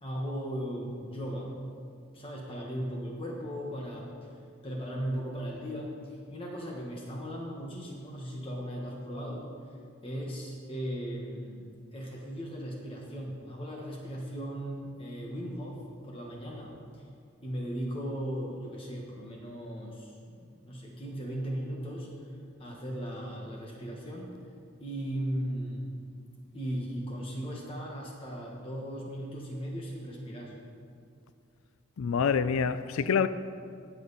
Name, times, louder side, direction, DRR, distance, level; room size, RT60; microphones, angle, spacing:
voice 1, 0.0-1.5 2.1-4.1 4.6-9.5 10.0-17.1 17.4-22.1 22.6-24.3 24.8-25.8 26.5-30.5, equal, 25° left, 1.4 m, -37 dB
voice 2, 32.0-33.3, left 6 dB, 85° left, 0.4 m, -26 dB
18.5 x 7.8 x 4.1 m
head